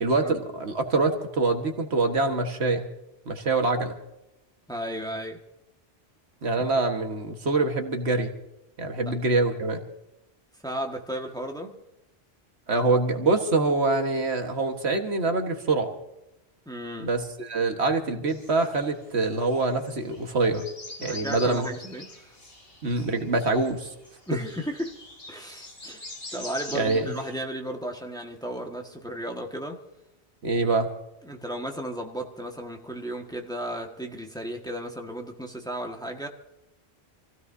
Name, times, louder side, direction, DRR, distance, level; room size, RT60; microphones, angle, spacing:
voice 1, 0.0-2.9 3.3-4.0 6.4-8.4 8.8-9.8 12.7-15.9 17.0-20.6 21.0-21.7 22.8-23.9 26.7-27.1 30.4-30.9, right 3 dB, 80° right, 5 dB, 1.7 m, -25 dB
voice 2, 4.7-5.4 6.6-6.7 9.1-9.2 10.6-11.8 16.6-17.1 21.0-22.4 24.3-25.0 25.3-26.0 26.3-29.8 31.2-36.3, equal, 5° left, 2 dB, 1.5 m, -34 dB
sound 1, 18.3-27.4, left 2 dB, 65° left, 3.1 m, -44 dB
27.0 x 16.0 x 2.7 m, 0.91 s
omnidirectional pair, 1.1 m